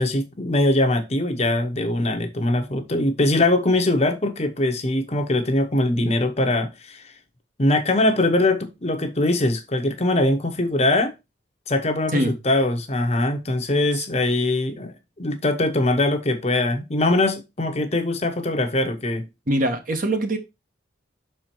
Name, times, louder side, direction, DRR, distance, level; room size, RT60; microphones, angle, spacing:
voice 1, 0.0-7.0 7.6-11.1 11.7-19.3, left 2 dB, 35° left, 0.9 m, -22 dB
voice 2, 19.5-20.4, right 1 dB, 45° right, 1.1 m, -22 dB
6.2 x 4.5 x 4.4 m
head